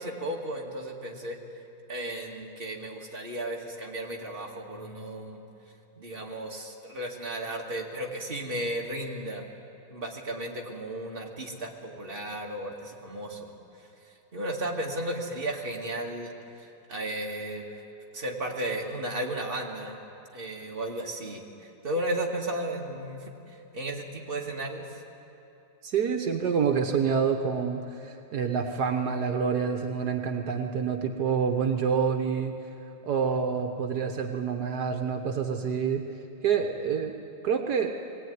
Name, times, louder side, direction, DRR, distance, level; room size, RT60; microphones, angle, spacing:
voice 1, 0.0-1.4 1.9-5.4 6.0-9.5 9.9-13.5 14.3-16.3 16.6-17.7 18.1-20.0 20.3-24.9, right 1 dB, 35° right, -1 dB, 2.4 m, -34 dB
voice 2, 25.8-32.6 33.0-36.0 36.4-37.1 37.4-38.0, right 6 dB, 75° right, 4 dB, 1.7 m, -27 dB
22.0 x 17.0 x 9.4 m, 2.8 s
omnidirectional pair, 1.7 m